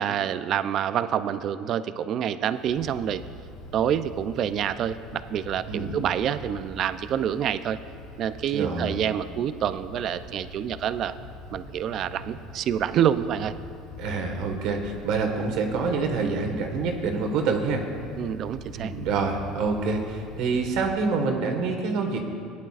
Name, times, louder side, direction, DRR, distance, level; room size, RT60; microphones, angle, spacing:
voice 1, 0.0-3.2 3.7-7.8 8.2-11.1 11.5-13.5 18.2-18.9, right 9 dB, 45° right, 13 dB, 0.4 m, -27 dB
Wind, 2.5-20.9, left 2 dB, 85° left, 2.4 m, -44 dB
voice 2, 5.7-6.0 8.5-8.9 14.0-17.8 18.7-22.2, right 4 dB, 65° right, 4 dB, 1.6 m, -26 dB
19.0 x 10.5 x 2.5 m, 2.5 s
cardioid pair, 125°, 0 cm